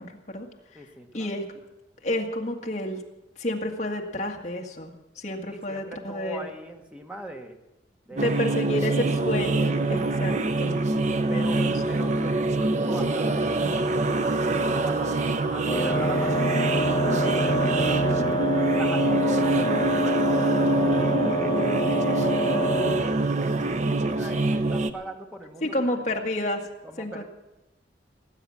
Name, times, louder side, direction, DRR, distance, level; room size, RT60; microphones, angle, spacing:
voice 1, 0.0-1.5 2.0-3.0 3.4-6.4 8.1-10.8 11.3-12.1 25.6-26.7 27.0-27.2, left 1 dB, 40° left, 1 dB, 1.9 m, -30 dB
voice 2, 0.7-1.3 5.5-7.6 8.0-8.3 11.3-11.6 11.9-15.1 15.5-18.1 18.7-23.3 24.0-25.9 26.8-27.2, right 1 dB, 5° right, 3 dB, 1.5 m, -40 dB
sound 1, 8.2-24.9, right 2 dB, 40° right, 0.7 m, -25 dB
Wind instrument woodwind instrument, 15.7-23.1, equal, 20° left, 1.1 m, -27 dB
18.5 x 9.2 x 7.3 m, 1.0 s
head